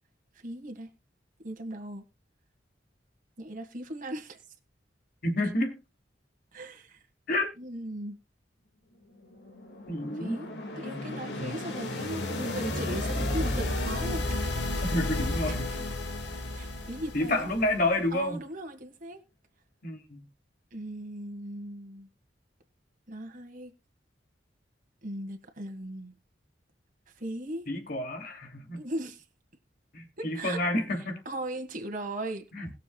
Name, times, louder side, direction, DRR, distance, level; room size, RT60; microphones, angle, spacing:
voice 1, 0.4-0.9 1.4-2.0 3.4-4.4 6.5-7.0 7.6-8.2 10.2-10.5 10.8-14.3 15.4-15.8 16.5-17.5 18.1-19.2 20.7-22.1 23.1-23.7 25.0-26.1 27.2-27.7 28.7-29.2 30.2-30.6 31.2-32.4, right 1 dB, 50° right, 1.8 m, -38 dB
voice 2, 5.2-5.8 7.3-7.5 9.9-10.4 14.8-15.8 17.1-18.4 19.8-20.2 27.7-28.8 29.9-31.2 32.5-32.7, left 1 dB, 55° left, 2.8 m, -29 dB
sound 1, 9.2-18.1, left 2 dB, 70° left, 2.1 m, -33 dB
20.5 x 7.1 x 2.3 m
head